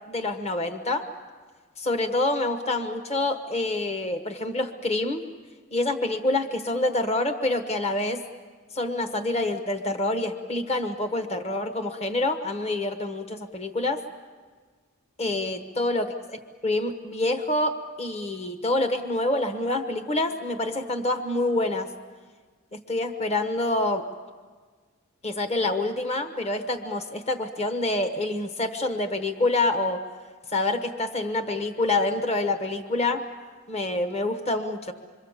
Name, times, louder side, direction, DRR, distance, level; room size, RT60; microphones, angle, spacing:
voice 1, 0.1-1.1 1.8-5.3 5.7-8.2 8.7-14.0 15.2-21.9 22.7-24.1 25.2-30.0 30.5-33.2 33.7-34.9, left 2 dB, 30° left, 8 dB, 1.2 m, -27 dB
26.5 x 24.0 x 7.3 m, 1.5 s
head